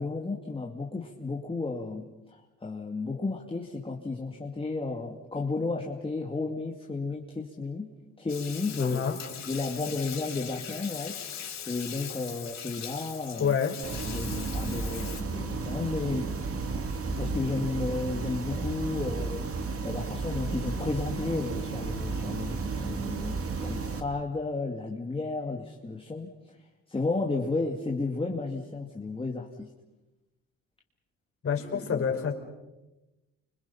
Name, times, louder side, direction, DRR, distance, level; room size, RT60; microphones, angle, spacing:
voice 1, 0.0-7.9 8.2-9.0 9.5-11.2 11.6-13.6 14.1-16.3 17.2-26.3 26.9-29.7 31.6-32.0, left 3 dB, 20° left, 0 dB, 2.6 m, -33 dB
Bathtub (filling or washing), 8.3-15.2, left 8 dB, 65° left, 6.3 m, -40 dB
voice 2, 8.8-9.2 13.4-13.8 31.4-32.3, left 7 dB, 45° left, 2 dB, 4.9 m, -27 dB
sound 1, 13.8-24.0, right 4 dB, 50° right, 2.6 m, -33 dB
29.5 x 25.5 x 5.8 m, 1.0 s
cardioid pair, 90°, 30 cm